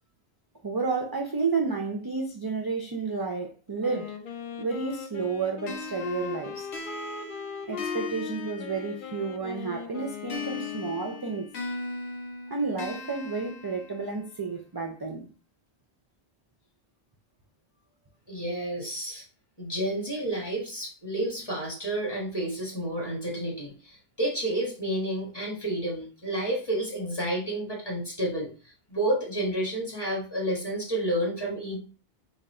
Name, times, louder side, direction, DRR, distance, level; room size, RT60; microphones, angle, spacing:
voice 1, 0.6-4.1 4.6-6.7 7.7-11.5 12.5-15.3, right 4 dB, 35° right, 0.3 m, -31 dB
Wind instrument woodwind instrument, 3.8-11.4, left 7 dB, 60° left, 0.6 m, -39 dB
sound 1, 5.7-9.3 10.3-14.3, left 3 dB, 80° left, 1.1 m, -39 dB
voice 2, 18.3-19.2 19.6-28.5 28.9-31.8, right 1 dB, 25° left, 1.4 m, -30 dB
3.8 x 2.3 x 4.3 m
omnidirectional pair, 1.1 m